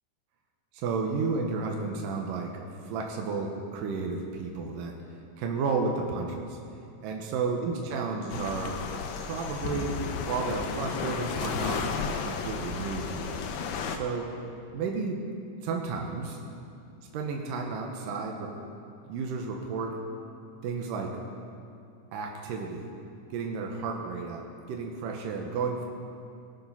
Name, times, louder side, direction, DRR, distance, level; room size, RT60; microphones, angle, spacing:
voice 1, 0.7-5.0 5.4-6.6 7.0-8.8 9.2-10.0 10.3-11.9 12.2-13.4 13.9-14.4 14.7-15.2 15.6-16.4 17.1-18.5 19.1-20.0 20.6-21.2 22.1-22.9 23.3-24.4 24.7-25.8, right 4 dB, 75° right, 1 dB, 2.0 m, -32 dB
sound 1, 8.3-14.0, left 5 dB, 85° left, 2.0 m, -33 dB
20.5 x 7.5 x 5.6 m, 2.5 s
omnidirectional pair, 5.1 m